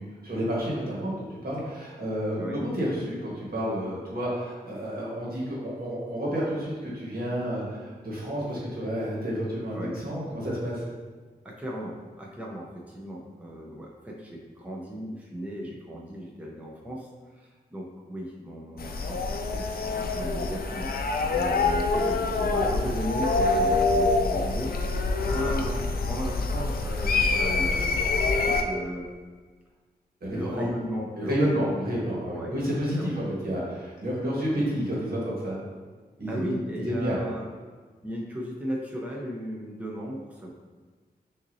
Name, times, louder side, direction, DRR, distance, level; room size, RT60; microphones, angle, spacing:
voice 1, 0.0-10.8 21.1-21.4 30.2-30.7 31.2-35.6 36.2-36.5 36.8-37.2, equal, 65° right, -5 dB, 1.4 m, -30 dB
voice 2, 11.4-17.1 17.3-29.1 30.3-31.8 32.1-32.6 32.9-33.2 36.3-37.5 38.0-40.5, equal, 10° right, -3 dB, 0.6 m, -36 dB
sound 1, 18.8-28.6, left 3 dB, 65° left, 0.4 m, -26 dB
5.9 x 2.7 x 2.7 m, 1.4 s
wide cardioid pair, 75°, 17 cm